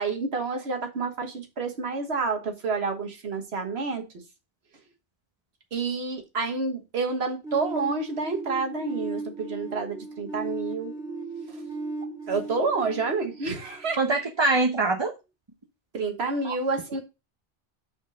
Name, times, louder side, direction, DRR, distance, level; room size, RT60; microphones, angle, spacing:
voice 1, 0.0-4.0 5.7-10.9 11.5-11.6 12.3-14.0 15.9-17.0, right 4 dB, 80° right, 1.6 m, -29 dB
sound 1, 7.4-14.2, right 3 dB, 5° right, 2.6 m, -36 dB
voice 2, 14.0-15.1 16.4-16.5, right 3 dB, 30° right, 0.9 m, -23 dB
6.0 x 4.4 x 6.1 m
omnidirectional pair, 1.1 m